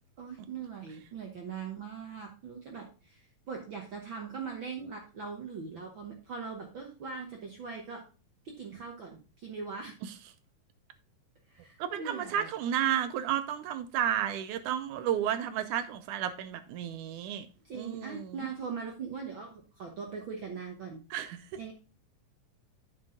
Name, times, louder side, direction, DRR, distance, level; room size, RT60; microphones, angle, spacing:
voice 1, 0.2-8.0 8.4-9.9 11.5-12.5 17.6-21.0 21.6-21.7, right 5 dB, 65° right, 1.2 m, -41 dB
voice 2, 11.8-17.5 17.7-18.4 21.1-21.4, right 10 dB, 80° right, 2.1 m, -32 dB
8.1 x 6.2 x 3.8 m
omnidirectional pair, 3.7 m